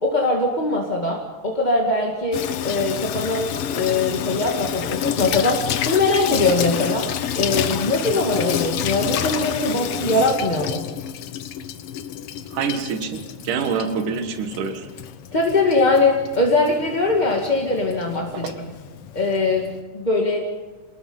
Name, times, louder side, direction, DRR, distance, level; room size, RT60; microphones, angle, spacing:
voice 1, 0.0-3.4 3.7-7.1 7.3-10.9 15.3-18.6 19.1-19.7 19.9-20.5, left 2 dB, 20° left, -1 dB, 1.5 m, -21 dB
Water tap faucet / Sink (filling or washing), 2.3-19.8, left 9 dB, 70° left, 1.4 m, -29 dB
voice 2, 12.5-14.9 18.2-18.5, right 6 dB, 85° right, 7 dB, 3.0 m, -26 dB
27.5 x 20.0 x 5.5 m, 1.3 s
omnidirectional pair, 3.6 m